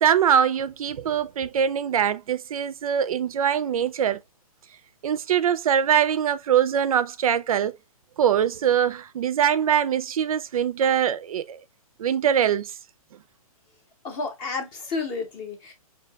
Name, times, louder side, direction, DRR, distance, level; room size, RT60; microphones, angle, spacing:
voice 1, 0.0-4.2 5.0-7.8 8.2-11.6 12.0-12.7, right 8 dB, 70° right, 0.4 m, -23 dB
voice 2, 14.0-15.7, left 4 dB, 20° left, 0.6 m, -31 dB
4.5 x 2.7 x 2.2 m
hypercardioid pair, 170°, 19 cm